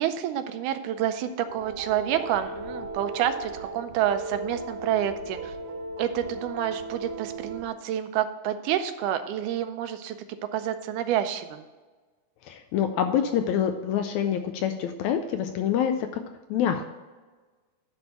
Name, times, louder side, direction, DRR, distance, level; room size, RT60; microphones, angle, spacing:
voice 1, 0.0-5.5 6.0-10.2 10.5-11.6, right 10 dB, 80° right, 9 dB, 2.1 m, -28 dB
sound 1, 1.5-7.6, right 3 dB, 65° right, 1.8 m, -37 dB
voice 2, 12.4-15.9 16.5-16.9, left 9 dB, 80° left, 7 dB, 1.7 m, -26 dB
10.0 x 3.6 x 6.8 m, 1.3 s
omnidirectional pair, 3.7 m